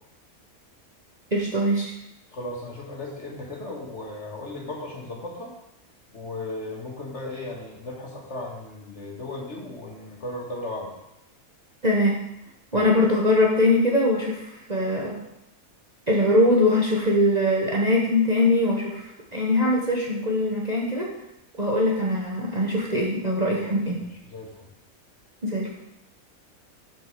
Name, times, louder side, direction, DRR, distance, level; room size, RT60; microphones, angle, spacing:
voice 1, 1.3-1.9 11.8-12.2 12.7-15.2 16.1-19.0 19.3-21.1 21.6-24.1 25.4-25.7, left 1 dB, 30° right, -3 dB, 1.1 m, -22 dB
voice 2, 2.3-5.5 6.1-11.0 12.7-12.9 23.5-24.7, left 2 dB, 50° left, -1 dB, 2.0 m, -36 dB
7.9 x 4.6 x 6.5 m, 0.86 s
omnidirectional pair, 1.5 m